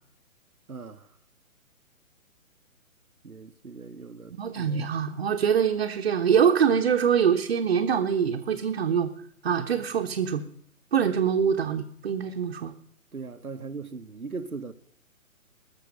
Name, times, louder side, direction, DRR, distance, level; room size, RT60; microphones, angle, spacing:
voice 1, 0.7-1.1 3.2-4.9 13.1-14.7, right 4 dB, 85° right, 1.0 m, -39 dB
voice 2, 4.4-9.1 9.4-10.4 10.9-12.7, right 7 dB, 45° right, 1.0 m, -24 dB
19.5 x 6.6 x 6.4 m
figure-of-eight pair, 130°, 42 cm